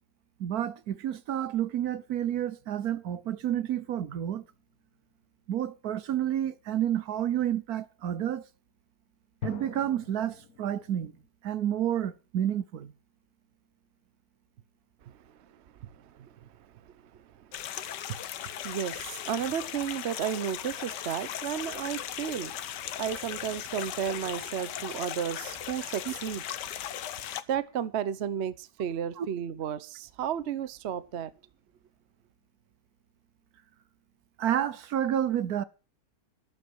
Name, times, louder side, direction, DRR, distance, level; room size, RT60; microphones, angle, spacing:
voice 1, 0.4-4.4 5.5-8.5 9.4-11.1 11.4-12.9 26.1-26.2 29.2-29.3 34.4-35.6, right 10 dB, 65° right, 1.3 m, -30 dB
sound 1, 3.4-4.7 9.4-11.3, left 9 dB, 60° left, 1.5 m, -44 dB
sound 2, 17.5-27.4, left 11 dB, 90° left, 1.5 m, -38 dB
voice 2, 18.6-22.5 23.0-26.4 27.5-31.3, right 9 dB, 50° right, 0.9 m, -33 dB
12.5 x 12.5 x 4.6 m
omnidirectional pair, 1.8 m